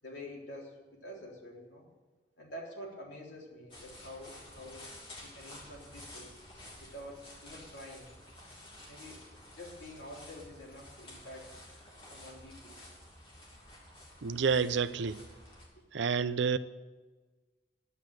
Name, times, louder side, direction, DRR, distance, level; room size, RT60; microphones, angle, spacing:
voice 1, 0.0-1.9 2.4-5.0 5.2-6.4 6.8-8.1 8.9-9.2 9.5-11.5 12.0-12.8, left 1 dB, 80° left, -3 dB, 3.7 m, -47 dB
sound 1, 3.7-15.7, left 1 dB, 30° left, 3.1 m, -51 dB
voice 2, 14.2-15.2 15.9-16.6, right 5 dB, 85° right, 13 dB, 0.6 m, -29 dB
11.0 x 9.0 x 7.9 m, 1.3 s
head